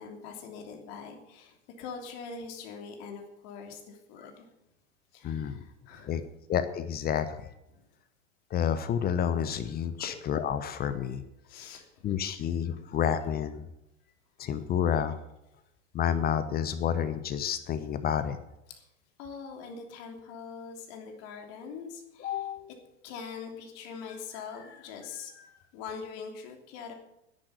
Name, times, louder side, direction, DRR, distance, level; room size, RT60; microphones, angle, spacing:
voice 1, 0.0-4.5 5.1-6.2 7.7-7.8 10.0-10.1 11.4-12.5 18.7-18.9 19.2-22.5 23.0-26.9, left 5 dB, 45° left, 3 dB, 3.2 m, -43 dB
voice 2, 5.2-5.5 6.0-6.2 6.5-7.5 8.5-11.2 12.0-13.6 14.4-15.2 15.9-18.4 22.2-22.7, left 8 dB, 25° left, 11 dB, 1.0 m, -29 dB
11.0 x 10.0 x 8.0 m, 0.86 s
figure-of-eight pair, 90°, 35 cm